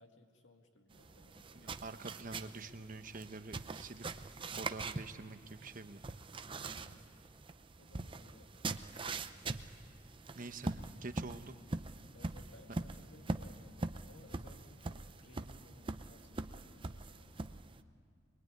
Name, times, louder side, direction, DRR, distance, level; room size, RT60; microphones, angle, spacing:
voice 1, 0.0-1.9 6.6-7.2 7.8-9.5 12.1-17.6, left 1 dB, 70° left, 3 dB, 2.3 m, -61 dB
sound 1, 0.9-17.8, right 3 dB, 25° right, 0.6 m, -43 dB
voice 2, 1.6-4.1 4.6-6.0 10.3-11.6, right 3 dB, 45° right, 8 dB, 1.0 m, -46 dB
24.5 x 21.0 x 9.5 m, 2.3 s
head